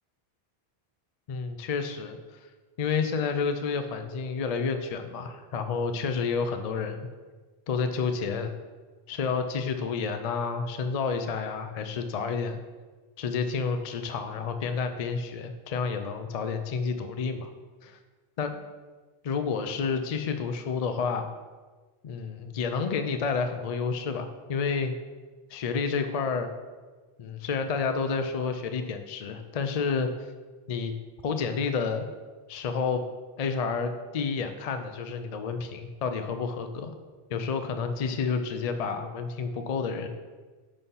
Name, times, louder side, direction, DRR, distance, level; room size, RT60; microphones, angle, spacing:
voice 1, 1.3-2.2 2.8-7.1 7.7-8.5 9.1-12.6 13.2-17.5 17.8-18.0 18.4-18.6 19.2-21.3 22.0-24.9 25.5-26.5 27.2-30.1 30.7-30.9 31.2-32.1 32.5-33.0 33.4-36.9 37.3-40.1, left 5 dB, 55° left, 7 dB, 0.4 m, -30 dB
5.5 x 4.1 x 5.5 m, 1.3 s
omnidirectional pair, 1.1 m